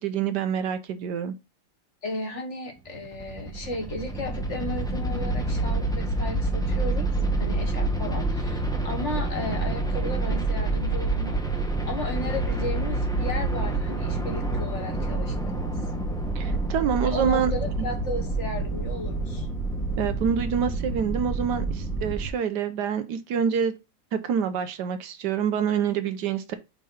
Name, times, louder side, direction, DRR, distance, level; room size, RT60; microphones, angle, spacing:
voice 1, 0.0-1.3 16.3-17.5 20.0-23.7 24.1-26.6, right 7 dB, 70° right, 1.2 m, -26 dB
voice 2, 2.0-7.1 7.4-11.4 11.9-15.7 17.0-19.5, left 2 dB, 45° left, 1.4 m, -35 dB
sound 1, 2.9-22.3, right 2 dB, 5° left, 0.6 m, -28 dB
5.6 x 3.7 x 5.5 m
omnidirectional pair, 2.0 m